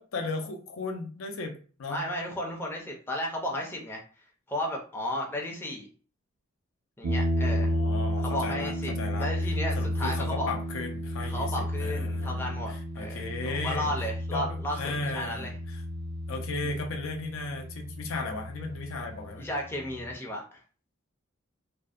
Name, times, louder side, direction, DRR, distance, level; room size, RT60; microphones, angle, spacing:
voice 1, 0.0-2.0 7.5-9.3 9.8-11.5 11.8-12.5 13.0-13.9 14.3-15.8 16.3-19.5, left 3 dB, 75° left, 4 dB, 0.5 m, -36 dB
voice 2, 1.9-4.0 4.5-5.9 7.0-7.7 8.2-10.5 11.2-15.5 19.4-20.4, left 1 dB, 10° left, -1 dB, 0.4 m, -34 dB
sound 1, 7.0-20.1, left 1 dB, 70° right, 0.4 m, -32 dB
2.5 x 2.1 x 2.4 m, 0.40 s
head